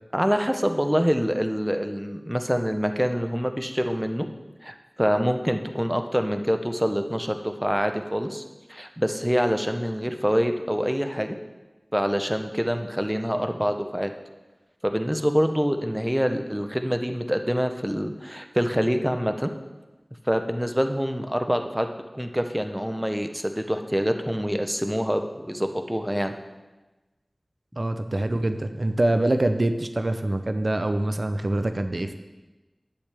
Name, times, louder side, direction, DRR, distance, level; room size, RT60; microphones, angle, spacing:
voice 1, 0.1-4.3 4.6-8.4 8.7-11.4 11.9-14.1 14.8-19.5 20.3-21.9 22.1-26.4, equal, 5° right, 6 dB, 0.7 m, -25 dB
voice 2, 27.8-32.1, right 1 dB, 55° right, 8 dB, 0.5 m, -25 dB
10.0 x 8.1 x 3.4 m, 1.1 s
wide cardioid pair, 50°, 0 cm